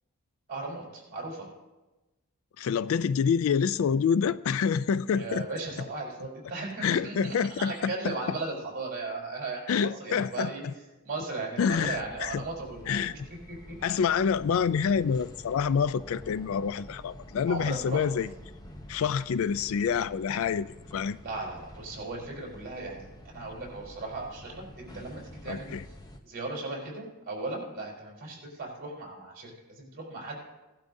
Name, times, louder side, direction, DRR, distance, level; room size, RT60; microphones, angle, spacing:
voice 1, 0.5-1.5 5.1-10.6 11.0-13.0 13.3-13.8 17.5-18.0 21.2-25.7 26.2-30.4, right 3 dB, 45° right, 3.8 m, -37 dB
voice 2, 2.6-5.5 6.8-7.9 9.7-10.5 11.6-12.4 12.9-13.1 13.8-18.3 18.9-21.2 25.5-25.8, left 6 dB, 70° left, 0.3 m, -27 dB
sound 1, 11.7-26.2, equal, 15° left, 0.7 m, -48 dB
17.0 x 12.0 x 2.7 m
head